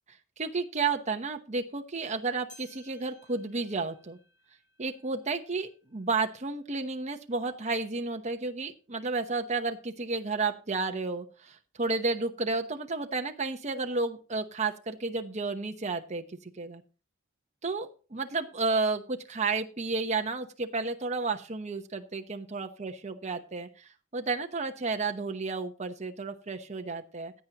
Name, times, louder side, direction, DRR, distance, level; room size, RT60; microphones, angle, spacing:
voice 1, 0.4-4.2 4.8-16.8 17.6-27.3, right 3 dB, 35° right, 5 dB, 1.0 m, -32 dB
sound 1, 2.5-7.1 7.6-7.7 8.5-8.6 9.6-9.7, left 2 dB, 40° left, 6.8 m, -60 dB
16.0 x 9.1 x 2.9 m, 0.35 s
head